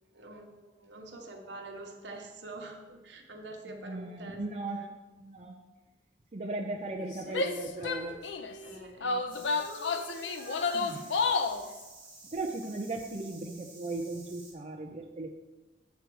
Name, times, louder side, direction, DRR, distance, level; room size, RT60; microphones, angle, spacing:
voice 1, 0.1-4.4 4.7-4.9 8.6-9.5 11.5-11.8, right 2 dB, 70° right, 2 dB, 1.2 m, -46 dB
voice 2, 3.7-4.9 5.2-5.6 6.3-8.2 10.7-11.1 12.3-15.3, right 2 dB, 35° right, 1 dB, 0.6 m, -37 dB
Female singing, 7.0-9.3 9.5-11.6 12.1-12.3, equal, 45° left, 1.1 m, -49 dB
Female speech woman speaking / Yell, 7.3-8.5 9.0-11.6, left 4 dB, 90° left, 0.6 m, -30 dB
sound 1, 9.3-14.5, right 3 dB, 10° right, 2.4 m, -52 dB
8.2 x 4.6 x 6.1 m, 1.1 s
head